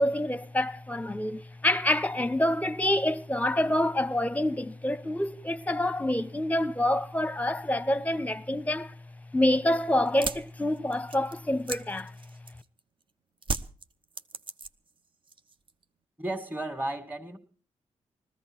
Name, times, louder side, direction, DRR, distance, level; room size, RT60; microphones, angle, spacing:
voice 1, 0.0-8.9 9.3-12.1, left 1 dB, 10° left, 0.9 m, -27 dB
sound 1, 10.1-12.8 13.4-15.0 15.3-15.8, right 3 dB, 40° right, 0.9 m, -36 dB
voice 2, 16.2-17.4, right 1 dB, 10° right, 2.0 m, -33 dB
19.5 x 14.5 x 4.5 m
cardioid pair, 65°, 13 cm